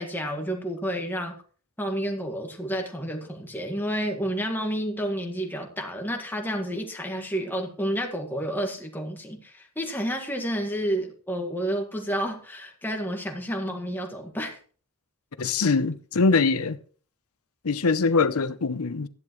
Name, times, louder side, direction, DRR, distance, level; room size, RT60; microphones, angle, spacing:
voice 1, 0.0-1.3 1.8-14.6, equal, 10° left, 1.7 m, -30 dB
voice 2, 15.4-16.8 17.6-19.1, left 4 dB, 85° left, 0.7 m, -23 dB
13.5 x 11.0 x 3.1 m
head